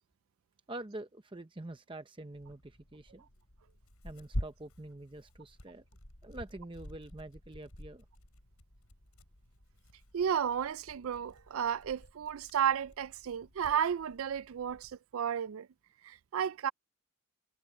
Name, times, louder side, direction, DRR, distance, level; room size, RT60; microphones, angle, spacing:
voice 1, 0.7-3.3 4.0-5.8 6.2-8.0, right 2 dB, 20° right, 0.7 m, -46 dB
Tearing, 2.3-14.9, equal, 85° left, 5.5 m, -47 dB
voice 2, 10.1-15.7 16.0-16.7, right 8 dB, 70° right, 0.4 m, -33 dB
head